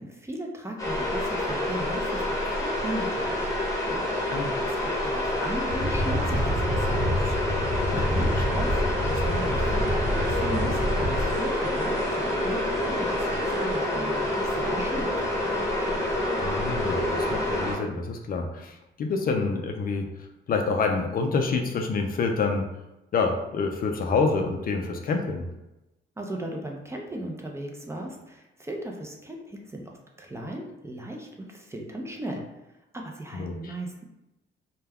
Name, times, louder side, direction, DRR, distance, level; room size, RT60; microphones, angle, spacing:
voice 1, 0.0-3.5 3.9-7.3 7.6-8.8 9.1-12.6 12.9-15.1 26.2-32.4 32.9-34.0, right 1 dB, 15° right, 1 dB, 0.5 m, -37 dB
sound 1, 0.8-17.8, left 1 dB, 15° left, 1.0 m, -27 dB
sound 2, 5.7-11.2, equal, 30° right, 1.3 m, -28 dB
sound 3, 7.6-13.8, right 4 dB, 70° right, 0.5 m, -39 dB
voice 2, 7.9-8.4 16.4-20.1 20.5-22.6 23.1-25.5 33.3-33.7, left 4 dB, 45° left, 4 dB, 0.4 m, -27 dB
2.2 x 2.2 x 3.4 m, 0.95 s
cardioid pair, 90°, 20 cm